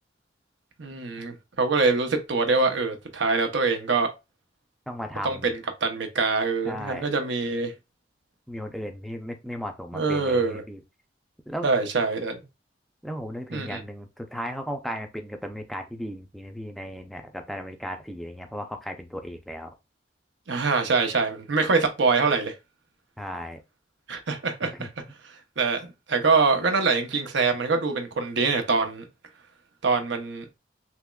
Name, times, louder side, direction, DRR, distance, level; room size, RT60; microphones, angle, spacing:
voice 1, 0.8-4.1 5.2-7.7 9.9-10.6 11.6-12.4 13.5-13.8 20.5-22.5 24.1-24.9 25.6-29.0 29.8-30.4, right 4 dB, 85° right, 0.7 m, -24 dB
voice 2, 4.9-5.5 6.7-7.0 8.5-10.8 11.5-11.7 13.0-19.7 23.2-23.6 24.7-24.9, equal, ahead, 0.4 m, -35 dB
3.5 x 3.0 x 2.2 m
head